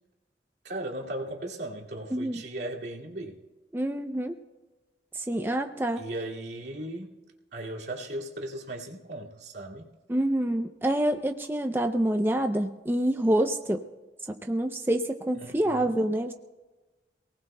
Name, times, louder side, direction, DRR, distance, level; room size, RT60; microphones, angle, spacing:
voice 1, 0.6-3.4 6.0-7.2 7.5-9.9 15.4-15.9, right 1 dB, 75° right, -2 dB, 2.3 m, -37 dB
voice 2, 3.7-4.4 5.1-6.0 10.1-13.9 14.3-16.3, right 1 dB, 15° right, 5 dB, 0.5 m, -27 dB
27.5 x 19.0 x 2.2 m, 1.2 s
head